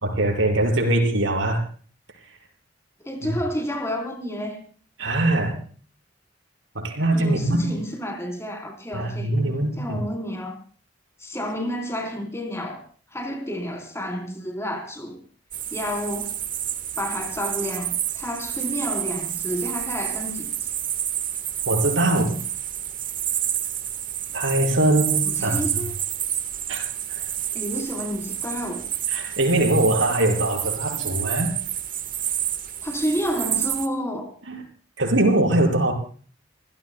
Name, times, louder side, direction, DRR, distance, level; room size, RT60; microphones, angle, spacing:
voice 1, 0.0-1.6 3.2-3.3 5.0-5.6 6.8-7.8 8.9-10.0 21.7-22.4 24.3-25.6 26.7-26.8 27.1-27.3 29.1-31.6 34.5-34.6 35.0-35.9, right 1 dB, 75° right, 5.6 m, -22 dB
voice 2, 3.0-4.6 7.1-9.4 9.8-10.6 11.2-12.8 13.1-15.2 15.7-16.5 17.0-20.7 25.2-25.9 27.5-28.9 32.8-34.3, equal, 15° left, 3.8 m, -30 dB
sound 1, 15.5-33.9, right 10 dB, 45° right, 1.4 m, -29 dB
29.5 x 16.0 x 2.2 m
head